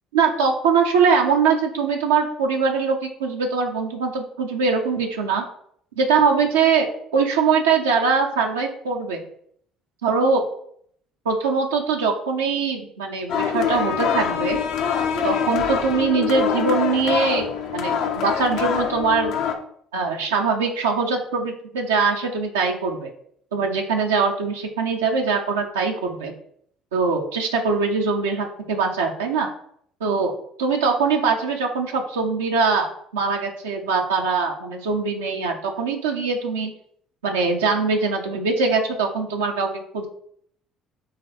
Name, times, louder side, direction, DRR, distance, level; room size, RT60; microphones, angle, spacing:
voice 1, 0.1-5.5 6.0-6.9 7.1-9.2 10.0-10.4 11.3-14.6 15.2-19.3 19.9-23.1 23.5-26.3 26.9-29.5 30.0-30.3 30.6-36.7 37.2-40.1, right 5 dB, 85° right, 1 dB, 0.5 m, -22 dB
sound 1, 13.3-19.6, left 7 dB, 70° left, 0.6 m, -24 dB
4.0 x 3.3 x 4.1 m, 0.67 s
hypercardioid pair, 60°, 0 cm